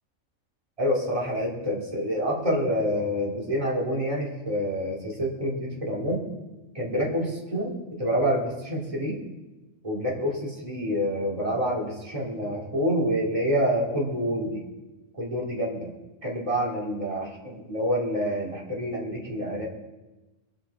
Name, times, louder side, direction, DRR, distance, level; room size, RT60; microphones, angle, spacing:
voice 1, 0.8-6.2 6.7-9.2 9.8-14.6 15.1-15.9 16.2-19.7, equal, 25° right, -5 dB, 3.4 m, -27 dB
23.0 x 8.1 x 4.3 m, 1.1 s
omnidirectional pair, 1.4 m